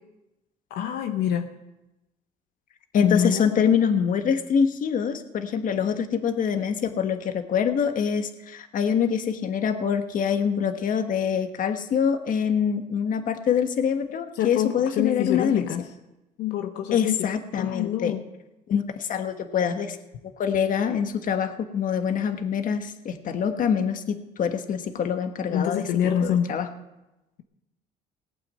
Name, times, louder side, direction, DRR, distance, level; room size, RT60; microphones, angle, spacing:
voice 1, 0.7-1.5 3.0-3.7 14.4-15.8 16.4-17.3 17.6-18.2 25.5-26.5, left 9 dB, 80° left, 5 dB, 1.0 m, -26 dB
voice 2, 2.9-15.7 16.9-18.1 18.7-20.0 20.4-25.9 26.2-26.7, left 7 dB, 50° left, 7 dB, 1.4 m, -25 dB
18.0 x 8.8 x 7.7 m, 0.98 s
cardioid pair, 110°, 17 cm